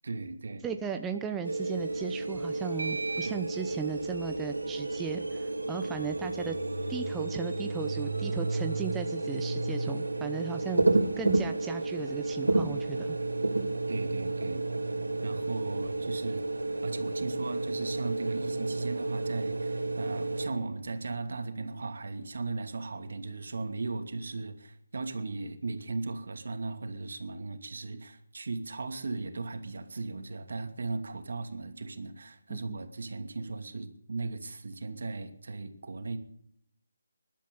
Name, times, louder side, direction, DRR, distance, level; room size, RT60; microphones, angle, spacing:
voice 1, 0.0-0.7 3.2-3.5 13.9-14.7 15.2-16.4 16.8-36.2, right 3 dB, 65° right, 6 dB, 2.6 m, -37 dB
voice 2, 0.6-6.6 6.9-10.8 11.2-13.2 32.5-32.8, right 7 dB, 10° right, 6 dB, 0.8 m, -37 dB
sound 1, 1.4-20.5, right 2 dB, 85° right, 2.9 m, -31 dB
20.5 x 12.0 x 5.5 m, 0.72 s
figure-of-eight pair, 155°, 0 cm